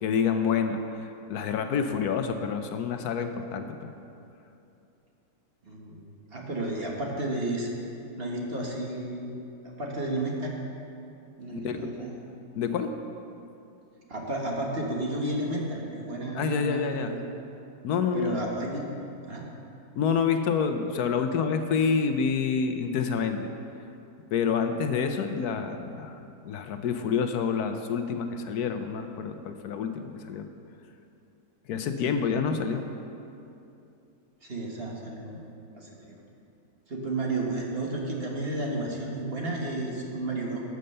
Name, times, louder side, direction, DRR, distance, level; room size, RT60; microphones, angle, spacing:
voice 1, 0.0-3.9 11.5-11.8 12.5-12.9 16.3-17.1 17.8-18.4 20.0-23.5 24.3-30.5 31.7-32.9, left 6 dB, 75° left, 7 dB, 1.1 m, -28 dB
voice 2, 5.6-7.7 8.2-10.5 11.4-12.1 14.1-17.2 18.1-18.8 19.3-19.4 34.4-35.9 36.9-40.6, right 2 dB, 40° right, -1 dB, 1.6 m, -32 dB
13.0 x 6.5 x 6.7 m, 2.7 s
omnidirectional pair, 1.7 m